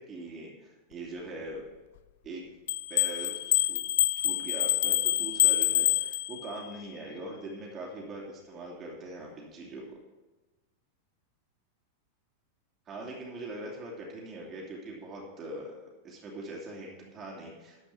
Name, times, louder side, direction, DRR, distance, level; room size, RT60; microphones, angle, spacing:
voice 1, 0.0-1.7 2.2-2.5 2.9-3.8 4.2-10.0 12.9-17.9, right 2 dB, 25° right, -3 dB, 2.6 m, -42 dB
sound 1, 2.7-6.7, left 15 dB, 55° left, 0.3 m, -26 dB
12.5 x 5.2 x 7.1 m, 1.2 s
figure-of-eight pair, 90°, 0 cm